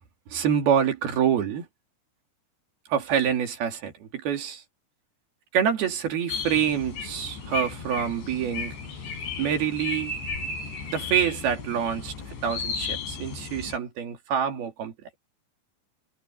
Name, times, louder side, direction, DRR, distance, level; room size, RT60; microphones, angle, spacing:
voice 1, 0.3-1.7 2.9-4.6 5.5-8.7 9.4-10.1 10.9-12.1 12.4-14.9, right 8 dB, 60° right, 4.3 m, -26 dB
sound 1, 6.3-13.8, left 5 dB, 75° left, 7.3 m, -34 dB
omnidirectional pair, 5.1 m